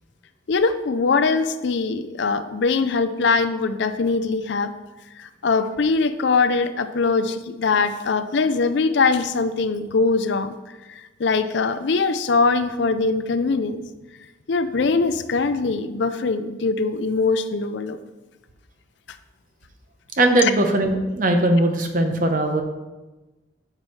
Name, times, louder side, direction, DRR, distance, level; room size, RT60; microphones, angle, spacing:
voice 1, 0.5-4.7 5.2-10.6 11.2-13.8 14.5-18.0, left 4 dB, 65° left, 11 dB, 0.5 m, -22 dB
voice 2, 20.2-22.6, right 1 dB, 45° right, 5 dB, 0.8 m, -19 dB
9.5 x 6.3 x 3.2 m, 1.1 s
head